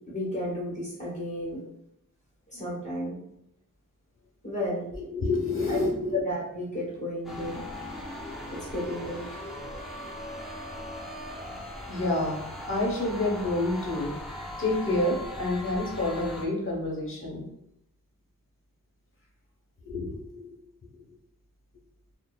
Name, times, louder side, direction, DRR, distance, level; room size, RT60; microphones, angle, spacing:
voice 1, 0.1-1.6 2.5-3.2 4.4-5.2 5.7-5.8 6.1-7.6 8.6-9.4, left 1 dB, 20° left, -8 dB, 1.1 m, -33 dB
voice 2, 4.9-6.2 11.9-14.1 14.6-17.4 19.8-20.5, left 2 dB, 35° left, -3 dB, 1.0 m, -28 dB
sound 1, 7.2-16.5, left 1 dB, ahead, 0.6 m, -39 dB
2.7 x 2.1 x 2.3 m, 0.80 s
wide cardioid pair, 55°, 35 cm